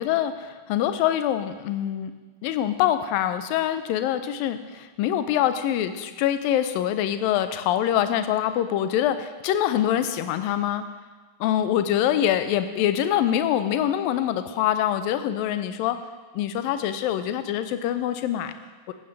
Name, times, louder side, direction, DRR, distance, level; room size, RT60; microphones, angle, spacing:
voice 1, 0.0-2.1 2.4-10.8 11.4-16.0 16.3-18.5 18.9-19.0, left 11 dB, 45° left, 11 dB, 0.7 m, -24 dB
15.0 x 9.0 x 3.4 m, 1.3 s
figure-of-eight pair, 90°, 0 cm